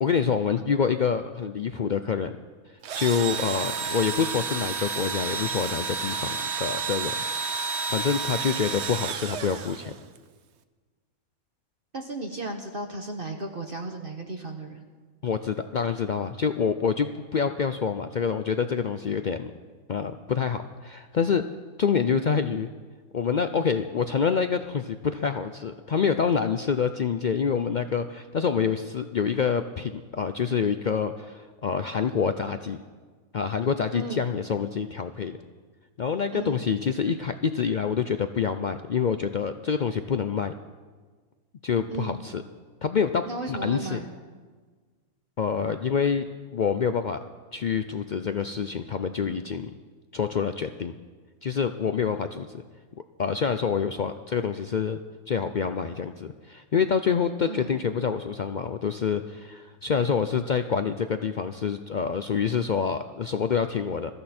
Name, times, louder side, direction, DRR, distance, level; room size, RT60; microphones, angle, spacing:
voice 1, 0.0-2.3 3.0-7.1 7.5-9.9 15.2-19.5 19.9-21.4 21.8-22.7 23.1-32.8 33.3-35.4 36.0-40.5 41.6-42.4 42.8-43.2 43.5-44.0 45.4-46.3 46.5-47.2 47.5-49.7 50.1-50.9 51.4-52.5 53.2-55.0 55.3-64.1, left 6 dB, 75° left, 9 dB, 0.4 m, -27 dB
Engine / Drill, 2.8-10.2, right 5 dB, 55° right, 0.9 m, -31 dB
voice 2, 11.9-14.8 33.9-34.3 36.3-36.6 41.9-42.2 43.3-44.1 57.5-57.7, right 2 dB, 40° right, 3 dB, 1.3 m, -34 dB
22.0 x 14.0 x 4.3 m, 1.5 s
omnidirectional pair, 1.5 m